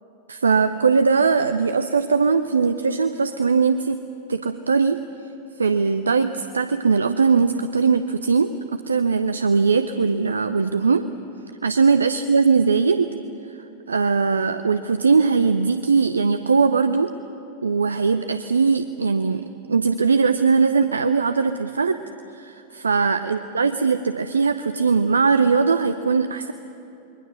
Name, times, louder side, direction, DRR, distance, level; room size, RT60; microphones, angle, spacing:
voice 1, 0.3-5.1 5.6-11.1 11.6-13.1 13.6-17.1 17.6-22.0 22.3-26.5, right 5 dB, 75° right, 10 dB, 0.6 m, -20 dB
28.5 x 22.0 x 6.5 m, 2.9 s
figure-of-eight pair, 90°, 0 cm